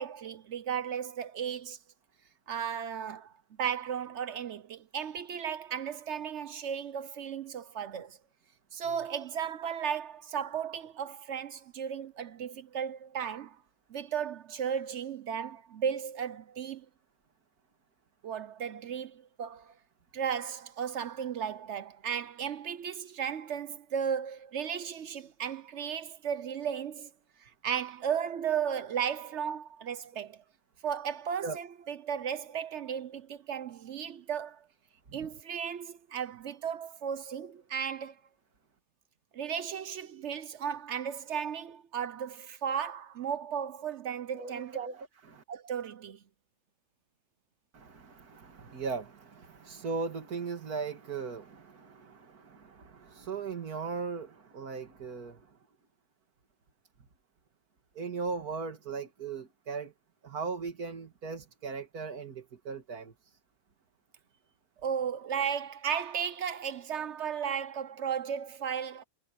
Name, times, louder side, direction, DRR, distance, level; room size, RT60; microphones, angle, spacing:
voice 1, 0.0-1.8 2.5-3.3 3.6-8.2 8.7-13.6 13.9-16.9 18.2-19.7 20.1-27.1 27.4-30.4 30.8-34.7 35.1-38.2 39.3-44.8 45.5-46.2 64.8-69.0, right 8 dB, 60° right, 0.9 m, -35 dB
voice 2, 44.3-45.4 47.7-55.6 58.0-59.9 60.2-63.4, right 4 dB, 90° right, 2.5 m, -38 dB
omnidirectional pair, 1.5 m